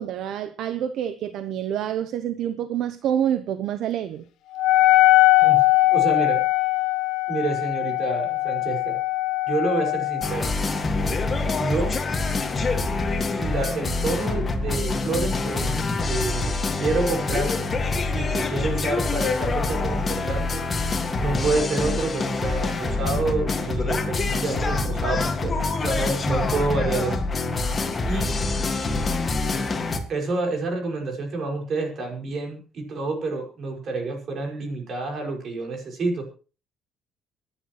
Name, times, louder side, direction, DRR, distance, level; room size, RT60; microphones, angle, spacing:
voice 1, 0.0-4.3, right 10 dB, 70° right, 0.9 m, -27 dB
Wind instrument woodwind instrument, 4.6-10.3, left 19 dB, 85° left, 0.9 m, -20 dB
voice 2, 5.9-6.4 7.3-9.0 9.5-10.5 11.6-12.0 13.4-15.7 16.0-17.5 18.1-20.6 21.2-27.2 28.1-28.4 30.1-36.2, right 3 dB, 50° right, 5.8 m, -28 dB
sound 1, 10.2-30.0, left 3 dB, 25° left, 2.1 m, -25 dB
25.0 x 10.0 x 3.2 m
cardioid pair, 125°, 0 cm